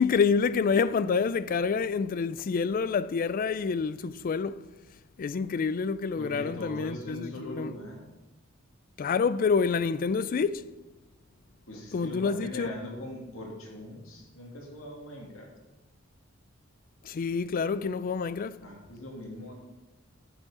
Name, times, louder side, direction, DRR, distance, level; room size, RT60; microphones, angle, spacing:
voice 1, 0.0-4.6 5.2-7.7 9.0-10.7 11.9-12.7 17.0-18.6, left 5 dB, 45° left, 0.3 m, -27 dB
voice 2, 6.2-8.0 11.7-15.5 18.6-19.5, left 1 dB, 80° left, 2.2 m, -41 dB
8.8 x 7.5 x 4.8 m
head